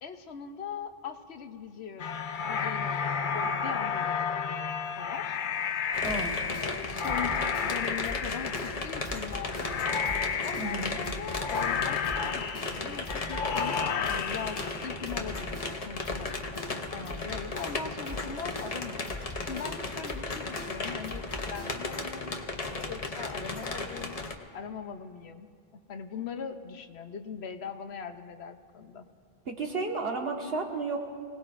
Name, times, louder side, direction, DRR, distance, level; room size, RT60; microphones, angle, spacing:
voice 1, 0.0-4.6 5.0-5.4 6.6-9.7 10.4-19.1 19.4-24.2 24.5-29.1, left 6 dB, 85° left, 8 dB, 1.1 m, -41 dB
sound 1, 2.0-15.4, left 6 dB, 60° left, 0.7 m, -32 dB
sound 2, 5.9-24.3, left 3 dB, 40° left, 1.0 m, -36 dB
sound 3, 6.0-22.0, left 1 dB, 25° left, 1.3 m, -43 dB
voice 2, 6.0-6.4 10.6-10.9 29.5-31.0, right 3 dB, 70° right, 1 dB, 1.8 m, -32 dB
25.0 x 18.5 x 2.5 m, 2.1 s
omnidirectional pair, 1.0 m